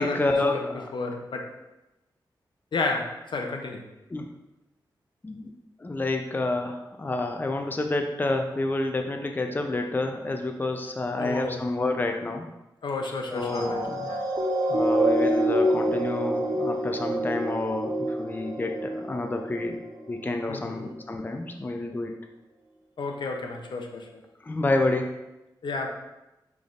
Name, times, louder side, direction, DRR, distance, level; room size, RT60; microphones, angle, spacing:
voice 1, 0.0-0.9 4.1-4.3 5.2-5.5 5.8-12.5 13.3-14.1 14.7-19.8 20.1-22.1 24.4-25.2, left 2 dB, 25° left, 4 dB, 0.4 m, -29 dB
voice 2, 0.9-1.5 2.7-3.8 11.2-11.6 12.8-14.2 20.5-20.9 23.0-24.2 25.6-25.9, left 3 dB, 70° left, 3 dB, 0.6 m, -32 dB
sound 1, 13.4-20.1 20.7-20.9, right 1 dB, 50° right, 0.7 m, -27 dB
5.9 x 3.4 x 2.5 m, 0.98 s
wide cardioid pair, 75°, 8 cm